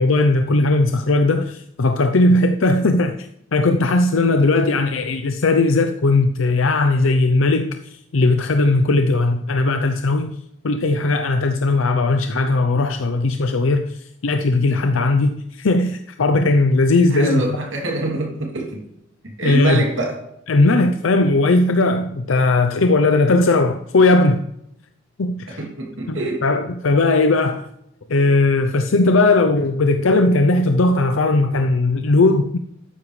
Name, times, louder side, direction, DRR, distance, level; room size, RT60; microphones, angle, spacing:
voice 1, 0.0-7.7 8.1-10.3 10.6-17.6 19.4-19.8 20.5-24.5 25.2-25.6 26.1-27.6 28.1-32.6, left 2 dB, 85° left, 0.6 m, -18 dB
voice 2, 17.1-18.8 19.2-20.2 25.5-26.4, right 2 dB, 75° right, 2.8 m, -25 dB
12.5 x 9.7 x 3.3 m
head